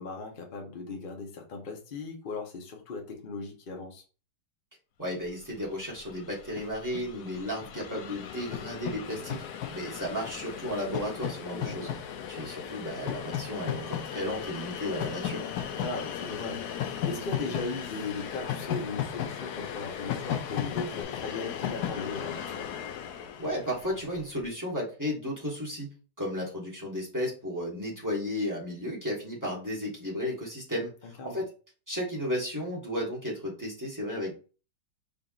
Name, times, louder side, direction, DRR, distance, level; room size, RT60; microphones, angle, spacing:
voice 1, 0.0-4.0 11.5-12.0 15.7-22.7 31.0-31.4, left 3 dB, 35° left, 0.9 m, -38 dB
voice 2, 5.0-9.4 9.7-11.9 12.3-15.4 23.4-25.9 26.2-30.9 31.2-31.5 31.9-34.3, equal, 10° right, 1.2 m, -34 dB
Train, 5.6-5.7 5.8-24.2, left 9 dB, 70° left, 1.0 m, -36 dB
sound 1, 9.0-21.0, left 6 dB, 90° left, 1.5 m, -51 dB
5.4 x 3.7 x 2.4 m
omnidirectional pair, 2.0 m